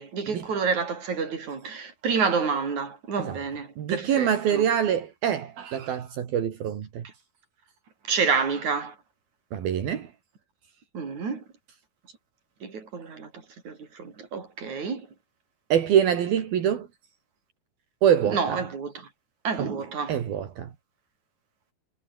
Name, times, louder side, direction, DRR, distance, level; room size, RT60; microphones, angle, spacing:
voice 1, 0.0-4.6 8.1-8.9 10.9-11.4 12.6-13.3 13.7-15.0 18.3-18.9 19.4-20.2, right 5 dB, 50° right, 6.2 m, -28 dB
voice 2, 3.8-7.1 9.5-10.1 15.7-16.9 18.0-18.6 19.6-19.7 20.1-20.7, right 9 dB, 70° right, 4.3 m, -25 dB
omnidirectional pair, 4.4 m